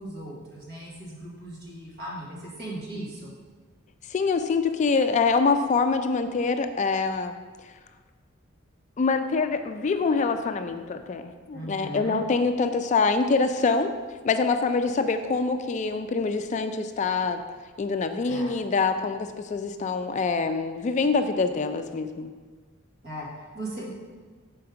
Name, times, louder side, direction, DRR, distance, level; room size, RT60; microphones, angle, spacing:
voice 1, 0.0-3.3 11.5-12.2 18.2-18.5 23.0-23.9, right 1 dB, 55° right, -5 dB, 2.3 m, -38 dB
voice 2, 4.1-7.3 9.0-13.9 14.2-17.4 17.8-22.3, left 4 dB, 35° left, 8 dB, 0.3 m, -25 dB
6.9 x 4.6 x 5.0 m, 1.5 s
head